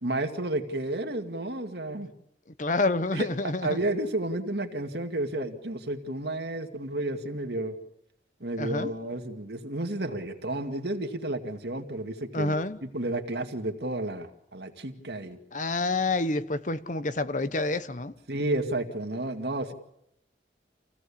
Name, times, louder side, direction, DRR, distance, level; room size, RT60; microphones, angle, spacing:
voice 1, 0.0-2.1 3.1-3.3 3.6-7.7 8.4-15.4 18.3-19.7, right 1 dB, 65° right, 2.2 m, -31 dB
voice 2, 2.6-3.8 8.6-8.9 12.3-12.8 15.5-18.1, left 2 dB, 45° left, 1.0 m, -28 dB
27.5 x 16.5 x 8.6 m
head